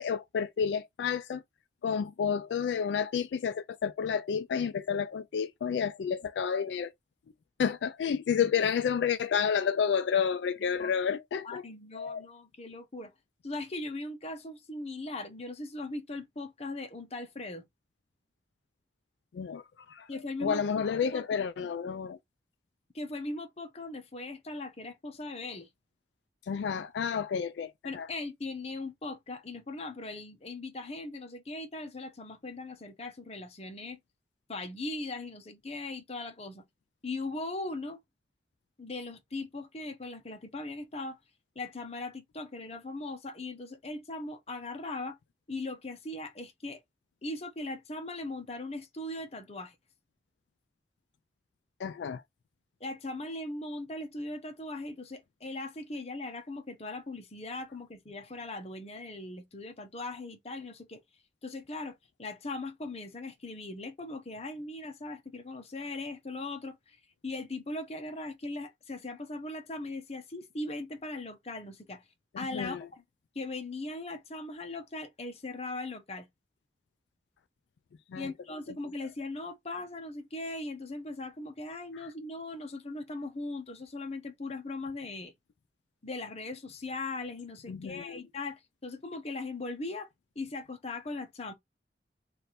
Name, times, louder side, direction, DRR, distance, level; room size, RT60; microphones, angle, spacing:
voice 1, 0.0-1.4 1.8-6.9 7.6-11.6 11.9-12.2 19.3-20.1 20.4-22.2 26.5-28.1 51.8-52.2 72.5-72.8 78.1-78.3 87.7-88.2, left 7 dB, 80° left, 0.3 m, -30 dB
voice 2, 11.4-13.1 13.4-17.6 20.1-20.6 21.1-21.7 22.9-25.7 27.8-34.0 34.5-36.6 37.0-38.0 38.8-41.2 41.5-45.2 45.5-46.8 47.2-49.7 52.8-61.0 61.4-67.0 67.2-72.0 72.4-73.0 73.3-76.3 78.1-85.3 86.0-90.1 90.4-91.5, left 2 dB, 35° left, 0.8 m, -39 dB
3.3 x 2.5 x 4.1 m
head